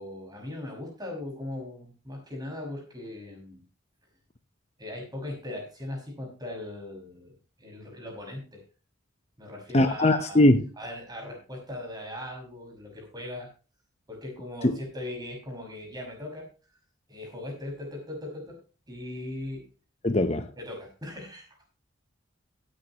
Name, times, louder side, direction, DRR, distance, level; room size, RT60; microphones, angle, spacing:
voice 1, 0.0-3.6 4.8-7.3 7.6-8.6 9.4-10.4 10.8-13.5 14.1-16.5 17.1-18.6 18.9-19.6 20.6-21.7, left 1 dB, 20° right, 5.9 m, -39 dB
voice 2, 9.7-10.7 14.6-14.8 20.0-20.5, left 1 dB, 30° left, 0.8 m, -21 dB
17.0 x 9.6 x 3.0 m
head